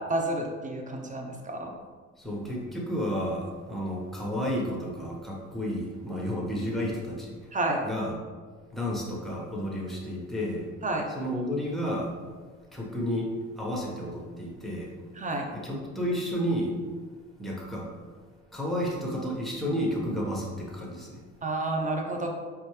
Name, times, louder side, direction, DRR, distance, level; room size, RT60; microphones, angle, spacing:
voice 1, 0.1-1.7 7.5-7.8 10.8-11.0 15.2-15.5 21.4-22.3, right 2 dB, 25° right, 2 dB, 0.9 m, -30 dB
voice 2, 2.2-7.4 7.8-8.2 8.7-10.7 11.1-12.2 12.7-14.9 15.5-16.8 17.4-17.9 18.5-21.2, equal, ahead, -3 dB, 1.3 m, -31 dB
4.2 x 3.4 x 3.3 m, 1.5 s
supercardioid pair, 60°, 30 cm